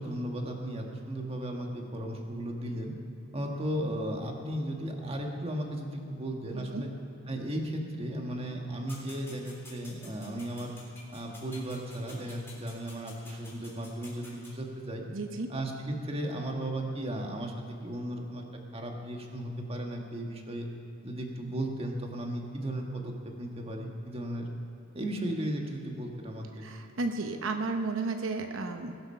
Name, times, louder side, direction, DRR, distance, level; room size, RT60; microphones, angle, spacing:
voice 1, 0.0-2.9 3.3-6.9 7.3-10.7 11.1-15.1 15.5-17.5 17.8-18.4 18.7-20.7 21.0-24.5 24.9-26.7, right 1 dB, 30° right, 1 dB, 1.6 m, -35 dB
sound 1, 8.9-14.5, left 2 dB, 10° left, 3.6 m, -51 dB
voice 2, 15.1-15.5 26.6-28.9, right 3 dB, 80° right, 5 dB, 0.8 m, -33 dB
20.5 x 7.9 x 5.7 m, 2.9 s
head